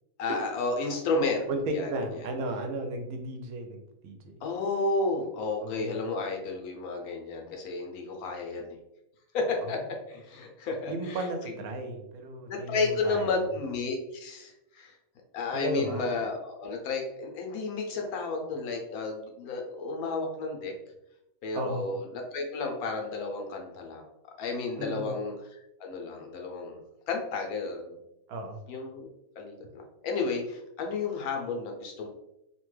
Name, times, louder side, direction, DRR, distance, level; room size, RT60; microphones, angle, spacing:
voice 1, 0.2-1.9 4.4-8.7 9.3-9.8 10.1-11.3 12.5-14.9 15.3-20.7 21.4-22.0 22.3-24.0 24.4-26.8 27.1-28.0 28.7-29.1 29.4-32.1, left 3 dB, 90° left, 2 dB, 1.1 m, -32 dB
voice 2, 1.5-4.4 5.6-6.1 9.6-9.8 10.9-13.5 15.5-16.1 21.5-21.8 24.8-25.1 28.3-28.6, right 1 dB, 90° right, 4 dB, 1.1 m, -34 dB
2.9 x 2.2 x 3.0 m, 0.88 s
omnidirectional pair, 1.5 m